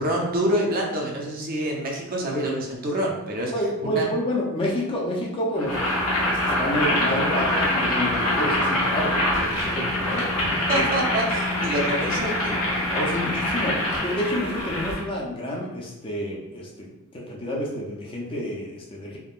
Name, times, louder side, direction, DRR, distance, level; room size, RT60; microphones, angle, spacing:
voice 1, 0.0-3.5 3.8-4.1 10.4-12.6, right 1 dB, 40° right, -1 dB, 0.5 m, -26 dB
voice 2, 3.5-5.8 6.3-10.8 12.9-19.2, equal, 25° left, -3 dB, 0.4 m, -29 dB
Boiling, 5.6-15.0, left 1 dB, 90° left, 1.0 m, -24 dB
3.5 x 2.1 x 2.4 m, 0.95 s
head